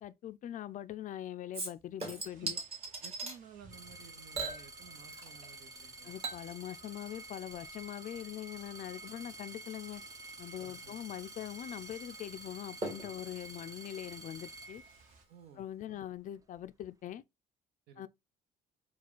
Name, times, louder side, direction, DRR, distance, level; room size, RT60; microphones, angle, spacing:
voice 1, 0.0-2.6 6.0-10.0 10.4-14.8 15.6-17.2 18.0-18.1, left 12 dB, 50° left, 0.4 m, -42 dB
Chink clink / Liquid, 1.5-3.4 4.3-5.5 5.8-14.8 15.1-15.2, right 3 dB, 35° right, 1.8 m, -44 dB
sound 1, 2.0-15.2, right 4 dB, 50° right, 1.2 m, -63 dB
voice 2, 3.0-6.1 10.6-10.9 15.3-16.0 17.9-18.1, right 7 dB, 75° right, 0.9 m, -55 dB
sound 2, 3.7-15.4 16.2-16.7, right 2 dB, 20° right, 0.6 m, -50 dB
4.1 x 2.3 x 4.4 m
cardioid pair, 110°, 17 cm